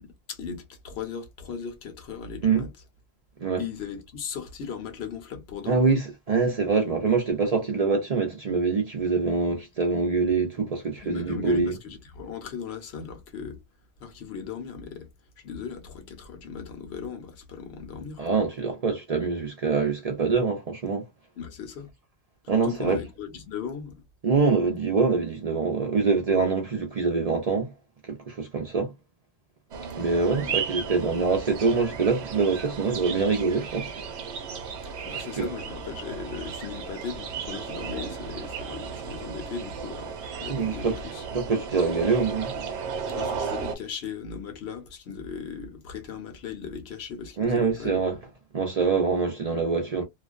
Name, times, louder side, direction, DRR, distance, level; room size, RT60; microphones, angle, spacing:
voice 1, 0.0-2.7 3.6-5.9 11.0-13.6 14.0-15.1 15.4-18.2 21.4-21.9 22.5-24.0 30.4-30.6 35.0-41.2 43.1-48.0, left 6 dB, 75° left, 1.0 m, -37 dB
voice 2, 5.7-11.7 18.2-21.1 22.5-23.0 24.2-27.7 28.1-28.9 30.0-33.9 35.4-35.5 40.5-41.0 41.3-42.6 47.4-48.2 48.5-50.0, right 4 dB, 45° right, 0.5 m, -25 dB
sound 1, 29.7-43.8, right 6 dB, 90° right, 0.9 m, -35 dB
2.4 x 2.1 x 2.4 m
omnidirectional pair, 1.1 m